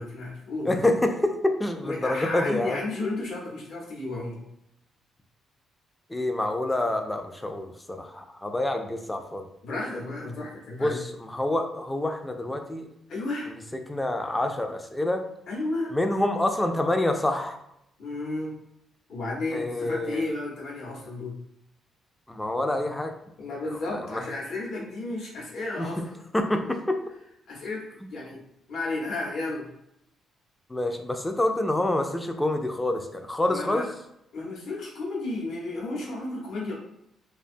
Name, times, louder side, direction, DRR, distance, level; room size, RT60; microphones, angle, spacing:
voice 1, 0.0-0.8 1.8-4.4 9.6-11.0 13.1-13.5 15.5-15.9 18.0-18.6 19.1-21.4 23.4-26.2 26.6-26.7 27.5-28.4 28.7-29.7 33.5-33.9 34.3-36.7, left 2 dB, 70° left, -3 dB, 0.8 m, -33 dB
voice 2, 0.6-2.8 6.1-9.4 10.8-12.9 13.7-15.2 15.9-17.6 19.5-20.2 22.3-23.1 23.9-24.2 25.8-25.9 26.3-27.0 28.0-28.1 30.7-33.9, left 1 dB, 10° left, 5 dB, 0.3 m, -27 dB
2.5 x 2.2 x 2.5 m, 0.81 s
cardioid pair, 90°, 0 cm